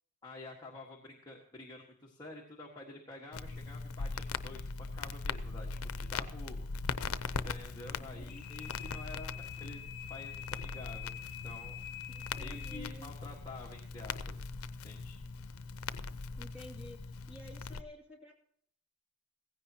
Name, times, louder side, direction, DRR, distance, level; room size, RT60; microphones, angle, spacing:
voice 1, 0.2-6.7 7.4-9.8 10.1-11.7 12.4-14.4 14.8-15.2, left 2 dB, 20° left, -4 dB, 1.5 m, -49 dB
Crackle, 3.3-17.8, left 4 dB, 85° left, 0.6 m, -40 dB
voice 2, 8.0-8.3 12.1-13.1 16.4-18.3, equal, 5° right, -2 dB, 2.4 m, -52 dB
sound 1, 8.2-12.8, left 11 dB, 35° left, 1.0 m, -46 dB
16.5 x 15.5 x 2.9 m, 0.64 s
head